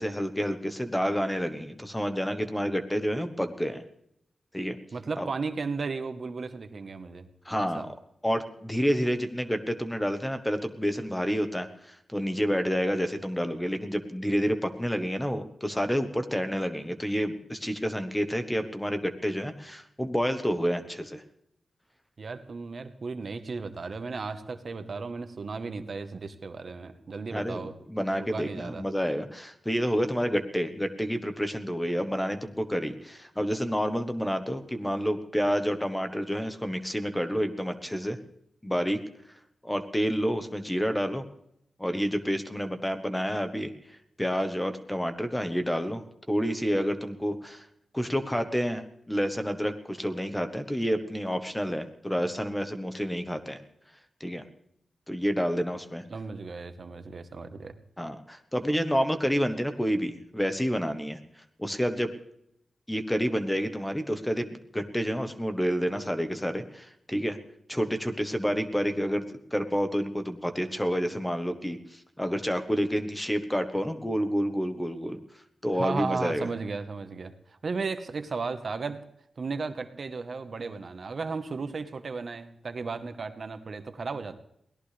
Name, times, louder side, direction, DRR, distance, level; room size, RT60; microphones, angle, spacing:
voice 1, 0.0-3.8 4.5-4.8 5.2-5.3 7.4-7.9 8.2-21.2 27.3-38.2 38.6-39.0 39.6-41.2 41.8-43.7 44.2-47.6 47.9-53.6 54.2-54.4 55.1-56.0 58.0-61.2 61.6-62.1 62.9-67.4 67.7-75.2 75.6-76.5, equal, 5° left, 8 dB, 1.1 m, -29 dB
voice 2, 4.9-7.3 7.6-7.9 22.2-27.7 28.1-28.9 56.1-57.8 75.7-79.0 79.4-84.4, right 4 dB, 50° right, 9 dB, 1.2 m, -35 dB
23.0 x 18.0 x 3.4 m, 0.75 s
wide cardioid pair, 150°, 0 cm